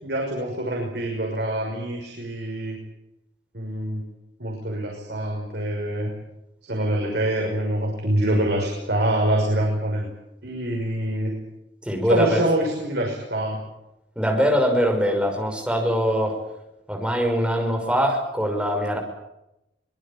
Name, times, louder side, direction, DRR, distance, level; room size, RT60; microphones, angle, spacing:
voice 1, 0.0-2.8 3.5-4.0 4.4-6.1 6.7-10.1 10.4-11.3 12.0-13.6, right 1 dB, 65° right, -1 dB, 6.0 m, -25 dB
voice 2, 11.8-12.4 14.2-16.4 16.9-19.0, equal, 5° right, 2 dB, 5.9 m, -22 dB
24.5 x 21.5 x 8.9 m, 0.90 s
head